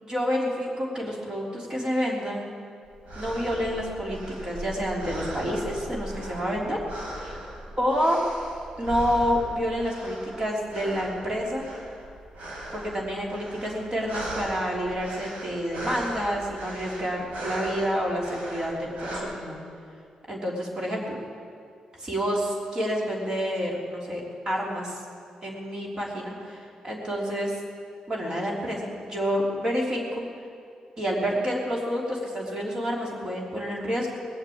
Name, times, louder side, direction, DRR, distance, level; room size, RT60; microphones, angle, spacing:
voice 1, 0.0-2.5 3.2-4.2 4.4-6.8 7.2-7.4 7.8-8.2 8.8-11.6 12.7-19.6 20.3-21.2 22.0-25.0 25.4-27.5 28.1-30.2 31.0-34.1, equal, 35° right, -3 dB, 3.5 m, -28 dB
sound 1, 2.9-19.2, right 1 dB, 80° right, 4.6 m, -38 dB
20.0 x 7.4 x 8.7 m, 2.4 s
cardioid pair, 120°, 2 cm